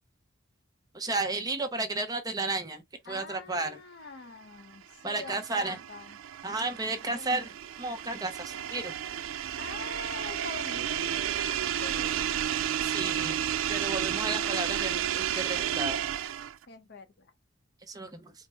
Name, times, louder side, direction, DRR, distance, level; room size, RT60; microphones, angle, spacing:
voice 1, 0.9-3.8 5.0-5.8 6.4-8.9 12.8-13.4 13.7-16.0 17.9-18.3, right 3 dB, 20° right, 0.6 m, -33 dB
voice 2, 3.0-6.2 7.1-7.4 9.6-11.0 11.7-12.4 16.7-17.3, left 4 dB, 55° left, 0.7 m, -45 dB
sound 1, 4.7-16.6, right 10 dB, 75° right, 0.3 m, -32 dB
4.4 x 2.0 x 3.3 m
head